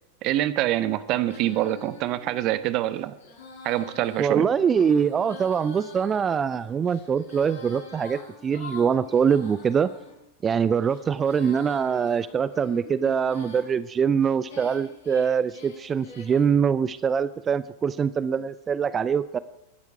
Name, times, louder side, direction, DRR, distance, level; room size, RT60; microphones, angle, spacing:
voice 1, 0.2-3.1 3.6-4.5, right 14 dB, 40° right, 14 dB, 1.1 m, -25 dB
Female singing, 1.2-10.1 10.7-13.7 14.2-16.5, left 3 dB, 60° left, 6.5 m, -46 dB
voice 2, 4.2-9.9 10.4-19.4, right 7 dB, 20° right, 17 dB, 0.5 m, -23 dB
24.0 x 12.0 x 4.7 m, 0.93 s
figure-of-eight pair, 90°, 0 cm